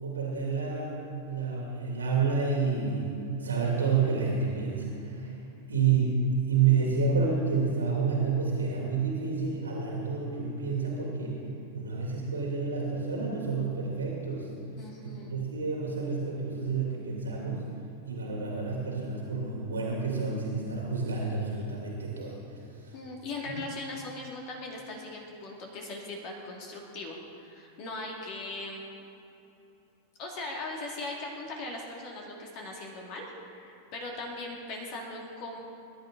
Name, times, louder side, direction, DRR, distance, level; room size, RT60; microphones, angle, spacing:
voice 1, 0.0-3.1 3.4-5.4 5.7-6.2 6.5-11.4 11.7-14.5 15.0-17.6 18.1-22.9, right 5 dB, 75° right, -3 dB, 2.6 m, -29 dB
voice 2, 14.8-15.3 22.9-28.8 30.2-35.6, left 2 dB, 40° left, -1 dB, 2.5 m, -39 dB
21.5 x 11.0 x 3.9 m, 2.8 s
figure-of-eight pair, 90°, 0 cm